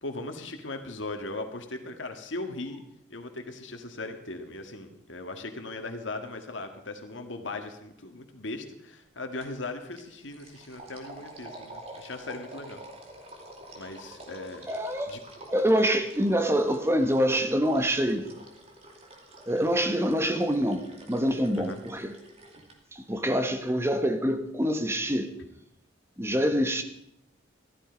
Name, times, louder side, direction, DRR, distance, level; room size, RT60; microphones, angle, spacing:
voice 1, 0.0-2.8 3.1-12.8 13.7-14.7 15.1-15.2 21.5-21.8, left 2 dB, 80° left, 1.8 m, -38 dB
sound 1, 9.4-9.6 9.9-22.8, right 1 dB, 35° right, 2.6 m, -48 dB
voice 2, 14.7-15.2 15.5-18.3 19.5-22.1 22.9-25.3 26.2-26.8, equal, 15° right, 1.2 m, -26 dB
15.0 x 12.5 x 5.2 m
head